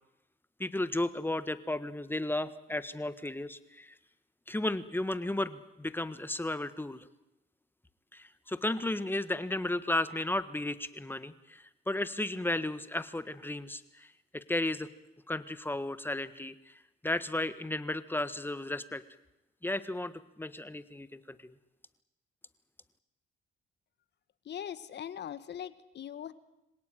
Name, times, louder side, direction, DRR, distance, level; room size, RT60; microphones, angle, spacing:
voice 1, 0.6-3.9 4.5-7.0 8.1-14.1 14.3-14.9 15.3-16.7 17.0-19.0 19.6-21.5, left 1 dB, 10° left, 13 dB, 1.6 m, -34 dB
voice 2, 24.4-26.3, left 9 dB, 60° left, 14 dB, 1.7 m, -41 dB
26.0 x 17.5 x 9.3 m, 0.93 s
cardioid pair, 90°, 20 cm